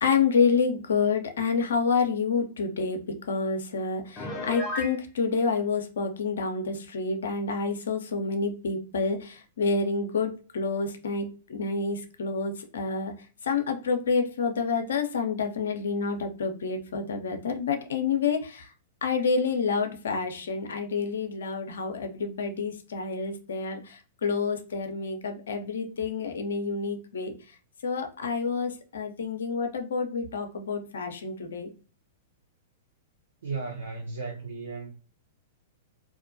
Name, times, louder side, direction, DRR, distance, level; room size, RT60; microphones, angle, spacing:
voice 1, 0.0-13.1 13.4-18.7 19.0-27.3 27.8-31.7, left 5 dB, 70° left, 0.5 m, -28 dB
Piano, 4.2-5.0, left 1 dB, 25° left, 0.6 m, -33 dB
voice 2, 33.4-34.9, right 4 dB, 75° right, 0.5 m, -35 dB
2.4 x 2.1 x 2.5 m
hypercardioid pair, 105°, 0 cm